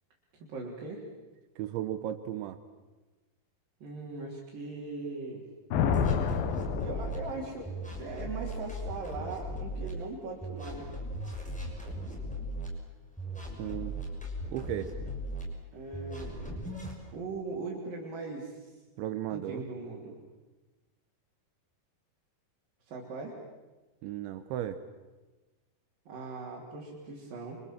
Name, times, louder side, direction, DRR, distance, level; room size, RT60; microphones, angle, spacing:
voice 1, 0.3-1.0 3.8-5.5 6.8-10.9 15.7-16.7 17.1-18.8 19.3-20.2 22.9-23.4 26.1-27.6, right 3 dB, 50° right, -3 dB, 5.0 m, -40 dB
voice 2, 1.6-2.6 13.6-14.0 14.5-14.9 19.0-19.7 24.0-24.8, right 12 dB, 80° right, 9 dB, 3.4 m, -35 dB
Thunder, 5.7-7.9, left 7 dB, 65° left, 2.8 m, -29 dB
sound 1, 5.9-7.2 7.6-9.9 10.4-12.7 13.2-15.4 15.9-17.0, equal, ahead, 5.6 m, -38 dB
28.5 x 26.0 x 7.5 m, 1.2 s
omnidirectional pair, 5.3 m